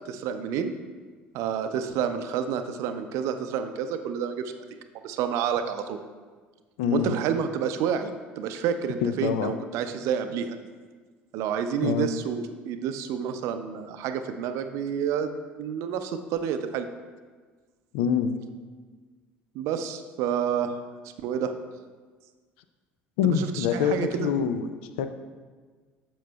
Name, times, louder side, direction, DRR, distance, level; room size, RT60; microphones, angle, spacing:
voice 1, 0.1-0.7 1.3-4.6 5.0-6.0 6.9-10.6 11.3-15.3 15.6-16.9 19.5-20.8 21.2-21.5 23.2-24.3, right 8 dB, 65° right, 8 dB, 0.5 m, -29 dB
voice 2, 6.8-7.1 9.0-9.5 11.8-12.1 17.9-18.3 23.2-24.7 25.0-25.1, left 8 dB, 70° left, 9 dB, 0.5 m, -25 dB
7.3 x 7.0 x 2.3 m, 1.5 s
hypercardioid pair, 65°, 6 cm